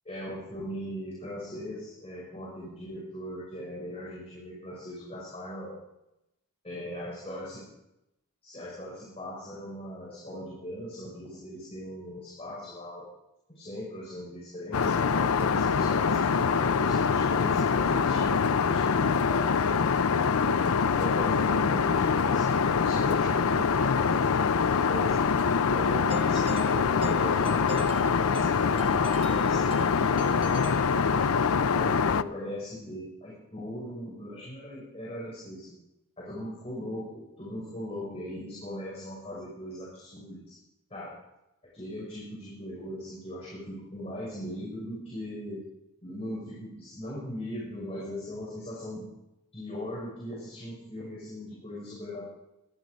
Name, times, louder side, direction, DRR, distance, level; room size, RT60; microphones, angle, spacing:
voice 1, 0.0-5.8 6.6-7.6 8.4-13.0 13.5-19.4 20.0-25.2 25.6-31.3 31.7-35.8 36.2-40.6 40.9-41.2 41.7-45.6 46.0-49.1 49.5-52.2, equal, 25° left, -7 dB, 6.2 m, -39 dB
Aircraft, 14.7-32.2, left 5 dB, 80° left, 0.5 m, -24 dB
Doorbell, 26.1-31.5, right 2 dB, 25° right, 1.4 m, -43 dB
20.0 x 12.5 x 5.2 m, 0.89 s
head